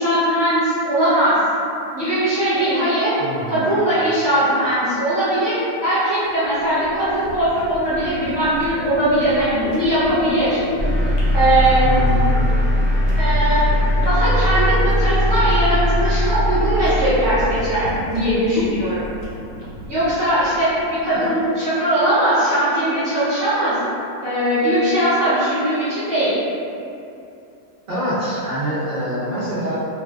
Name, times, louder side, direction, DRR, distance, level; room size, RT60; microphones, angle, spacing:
voice 1, 0.0-1.4 1.9-3.1 3.5-5.5 5.8-10.6 11.3-11.8 13.1-13.6 13.9-19.0 19.9-20.7 21.0-23.8 24.2-26.4, right 1 dB, 20° right, -14 dB, 1.1 m, -19 dB
voice 2, 3.2-3.8 11.8-12.4 21.1-21.3 27.9-29.8, equal, 75° right, -11 dB, 0.4 m, -25 dB
sound 1, 6.2-21.4, left 1 dB, 75° left, 1.1 m, -33 dB
sound 2, 10.8-17.9, left 1 dB, ahead, 0.5 m, -19 dB
2.5 x 2.4 x 2.2 m, 2.6 s
omnidirectional pair, 1.6 m